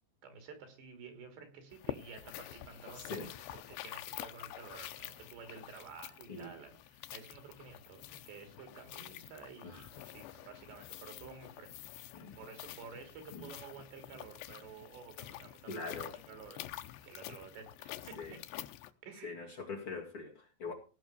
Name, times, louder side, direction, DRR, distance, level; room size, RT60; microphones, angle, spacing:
voice 1, 0.2-11.7 12.2-16.7 17.0-18.4 19.0-19.5, right 5 dB, 90° right, 5.3 m, -52 dB
sound 1, 1.7-18.9, left 14 dB, 90° left, 2.9 m, -48 dB
voice 2, 3.0-3.3 6.3-6.5 9.6-9.9 12.1-12.4 13.3-13.5 15.6-16.1 18.1-18.3 19.2-20.7, left 4 dB, 40° left, 2.4 m, -43 dB
17.0 x 6.0 x 6.8 m
omnidirectional pair, 4.8 m